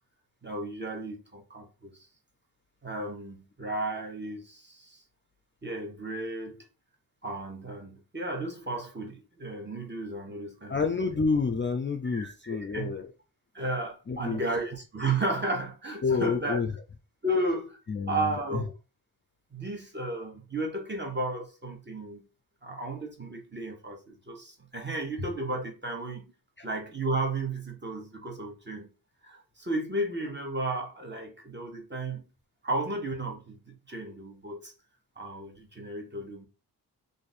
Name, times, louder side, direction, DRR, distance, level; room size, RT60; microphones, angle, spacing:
voice 1, 0.4-2.0 2.8-5.0 5.6-6.6 7.2-10.8 12.0-12.9 13.5-16.6 17.2-17.8 18.1-18.7 19.5-22.2 22.6-26.2 26.6-28.9 29.2-32.2 32.6-34.7 35.2-36.5, right 2 dB, 25° right, 1.0 m, -33 dB
voice 2, 10.7-13.1 14.1-14.4 16.0-16.7 17.9-18.3 18.5-18.6 26.6-26.7, left 5 dB, 30° left, 0.4 m, -28 dB
2.6 x 2.5 x 4.1 m
cardioid pair, 55°, 40 cm